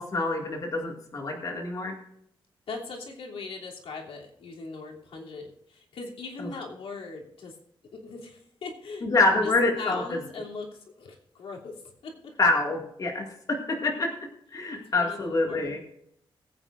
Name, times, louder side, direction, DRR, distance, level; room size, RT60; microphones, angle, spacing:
voice 1, 0.0-1.9 9.0-10.2 12.4-14.1 14.5-15.8, left 2 dB, 40° left, 0 dB, 2.1 m, -26 dB
voice 2, 2.7-7.5 8.0-9.1 9.4-9.5 9.8-11.7 12.0-12.1 14.9-15.7, left 4 dB, 85° left, -1 dB, 2.9 m, -40 dB
20.5 x 9.1 x 2.5 m, 0.71 s
wide cardioid pair, 155°, 9 cm